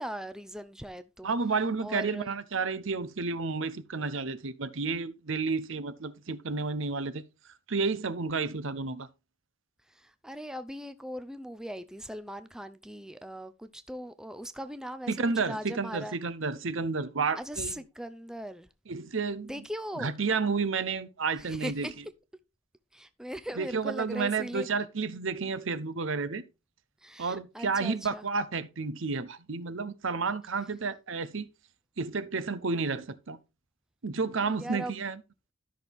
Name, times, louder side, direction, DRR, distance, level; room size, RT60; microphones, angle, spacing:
voice 1, 0.0-1.3 1.8-2.3 9.9-16.1 17.4-18.7 19.4-20.1 21.4-21.9 22.9-24.7 27.0-28.2 34.4-35.0, equal, 5° right, 0.5 m, -39 dB
voice 2, 1.2-7.2 7.7-9.1 15.1-17.8 18.9-19.6 20.0-21.9 23.6-26.4 27.2-31.5 32.0-33.4 34.0-35.2, right 4 dB, 70° right, 0.8 m, -31 dB
12.5 x 6.2 x 3.5 m
head